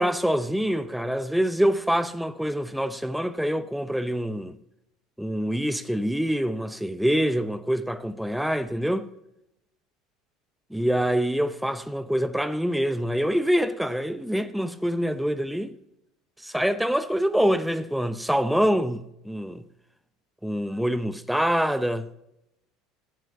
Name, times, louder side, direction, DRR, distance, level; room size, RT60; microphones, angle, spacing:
voice 1, 0.0-4.6 5.2-9.1 10.7-15.7 16.4-19.7 20.4-22.1, equal, ahead, 0.7 m, -25 dB
16.0 x 7.5 x 2.7 m
hypercardioid pair, 70°, 2 cm